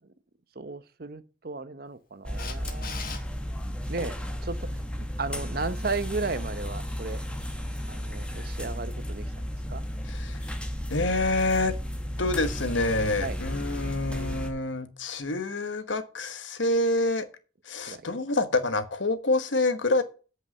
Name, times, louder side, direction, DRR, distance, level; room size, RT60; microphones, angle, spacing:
voice 1, 0.5-3.2 3.9-7.2 7.9-9.3 9.7-9.8 13.2-13.4 17.8-18.1, right 3 dB, 50° right, 0.8 m, -35 dB
sound 1, 2.2-14.5, equal, 5° left, 1.1 m, -34 dB
Camera, 2.4-3.2 9.9-10.0, left 6 dB, 45° left, 1.5 m, -38 dB
voice 2, 10.1-10.4 10.9-11.7 12.2-17.3 17.7-20.0, left 2 dB, 80° left, 1.2 m, -27 dB
8.1 x 5.5 x 7.6 m
head